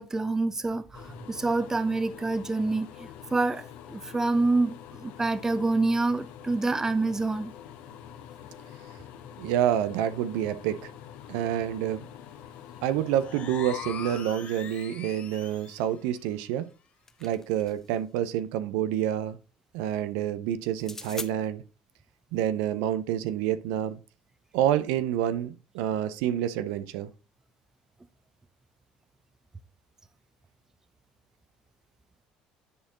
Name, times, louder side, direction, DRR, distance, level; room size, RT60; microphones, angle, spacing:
voice 1, 0.0-7.5, right 3 dB, 15° right, 0.8 m, -27 dB
sound 1, 0.9-14.2, left 9 dB, 75° left, 1.2 m, -46 dB
voice 2, 9.4-10.9 11.3-12.1 12.8-16.7 17.2-19.4 19.7-21.6 22.3-24.0 24.5-27.1, right 11 dB, 80° right, 0.6 m, -28 dB
sound 2, 13.2-15.9, left 8 dB, 50° left, 2.3 m, -41 dB
sound 3, 16.7-18.0 20.7-21.3, left 3 dB, 15° left, 0.9 m, -42 dB
10.0 x 4.4 x 3.7 m
supercardioid pair, 90°, 3 cm